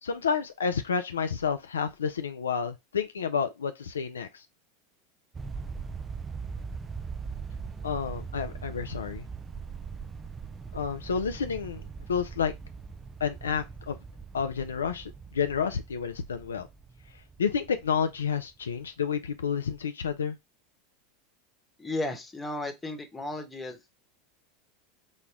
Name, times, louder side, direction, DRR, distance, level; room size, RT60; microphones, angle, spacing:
voice 1, 0.0-4.4 7.8-9.2 10.7-11.8 12.1-12.5 13.2-14.0 14.3-16.7 17.4-20.4, left 6 dB, 80° left, 0.4 m, -30 dB
sound 1, 5.3-18.6, right 5 dB, 20° right, 0.4 m, -41 dB
voice 2, 21.8-23.9, left 2 dB, 15° left, 1.1 m, -34 dB
4.2 x 2.2 x 3.3 m
hypercardioid pair, 85°, 0 cm